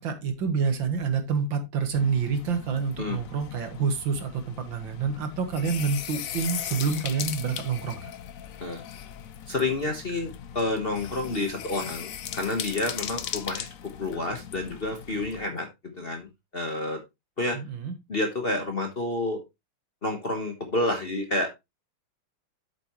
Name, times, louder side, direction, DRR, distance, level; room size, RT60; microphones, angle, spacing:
voice 1, 0.0-8.1 17.5-17.9, right 5 dB, 65° right, 2.1 m, -28 dB
sound 1, 1.9-15.4, left 9 dB, 75° left, 0.7 m, -38 dB
voice 2, 9.5-15.7 15.9-16.3 16.5-17.0 17.4-17.6 18.1-19.4 20.0-21.5, left 2 dB, 35° left, 1.2 m, -29 dB
8.3 x 7.8 x 3.0 m
omnidirectional pair, 2.3 m